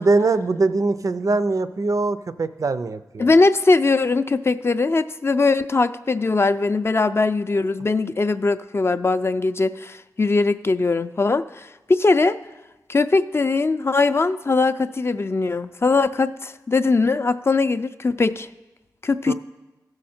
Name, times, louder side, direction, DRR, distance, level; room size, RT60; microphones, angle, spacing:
voice 1, 0.0-3.3 19.3-19.4, right 3 dB, 55° right, 12 dB, 0.4 m, -22 dB
voice 2, 3.2-12.4 12.9-18.5 19.0-19.3, left 3 dB, 35° left, 11 dB, 0.3 m, -20 dB
14.0 x 6.4 x 4.3 m, 1.1 s
wide cardioid pair, 70°, 7 cm